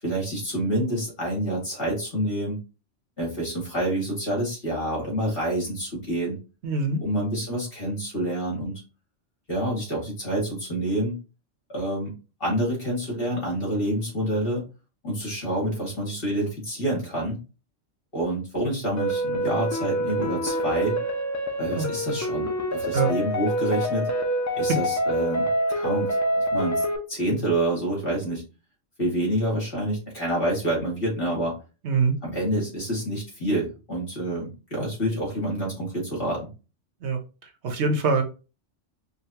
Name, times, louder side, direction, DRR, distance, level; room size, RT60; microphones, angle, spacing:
voice 1, 0.0-2.6 3.2-6.4 7.0-8.8 9.5-11.2 11.7-12.1 12.4-14.6 15.0-17.4 18.1-21.0 21.6-24.1 24.6-26.1 26.5-28.4 29.0-31.5 32.2-36.4, right 1 dB, 50° left, -3 dB, 2.3 m, -27 dB
voice 2, 6.6-7.0 21.8-21.9 22.9-23.1 31.8-32.1 37.0-38.2, right 4 dB, 70° right, 5 dB, 1.0 m, -24 dB
sound 1, 19.0-27.0, right 1 dB, 25° left, 0.4 m, -26 dB
5.1 x 2.4 x 2.8 m, 0.32 s
omnidirectional pair, 1.2 m